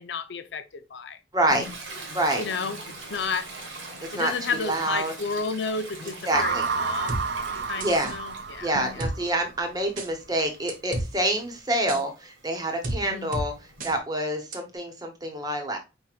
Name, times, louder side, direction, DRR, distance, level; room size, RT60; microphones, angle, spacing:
voice 1, 0.0-1.2 2.4-3.5 4.1-7.3 7.7-9.1 13.1-13.3, left 5 dB, 70° left, 0.5 m, -32 dB
voice 2, 1.3-1.7 2.1-2.4 4.1-4.3 4.6-5.1 6.3-6.6 7.8-8.1 8.6-13.5 13.8-15.8, right 1 dB, 20° right, 1.0 m, -27 dB
Toilet flush, 1.5-9.3 9.7-14.0, right 2 dB, 85° right, 2.0 m, -42 dB
sound 1, 6.3-9.6, right 5 dB, 65° right, 0.5 m, -30 dB
sound 2, 7.1-7.2 7.8-8.2 9.0-9.1 10.0-10.1 10.7-11.1 11.9-12.0 12.8-13.0 13.3-13.5 13.8-13.9 14.5-14.6, right 2 dB, 45° right, 0.9 m, -30 dB
4.8 x 4.4 x 2.4 m
head